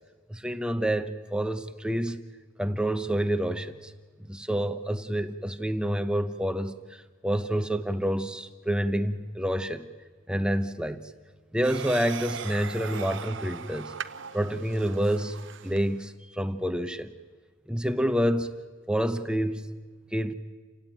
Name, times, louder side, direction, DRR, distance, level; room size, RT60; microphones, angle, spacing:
voice 1, 0.3-2.2 2.6-3.9 4.3-9.9 10.3-11.1 11.5-13.9 14.3-15.4 15.6-17.1 17.7-18.5 18.9-19.7 20.1-20.3, equal, 5° right, 0.8 m, -28 dB
sound 1, 11.6-16.0, right 6 dB, 55° right, 0.8 m, -39 dB
29.5 x 17.0 x 9.0 m
head